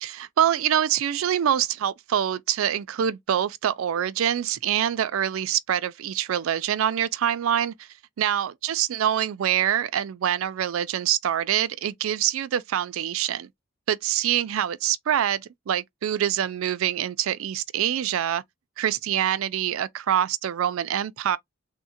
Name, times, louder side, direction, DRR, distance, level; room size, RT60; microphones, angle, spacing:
voice 1, 0.0-7.9 8.2-13.5 13.9-18.4 18.8-21.4, right 10 dB, 80° right, 0.4 m, -25 dB
3.5 x 2.1 x 2.7 m
head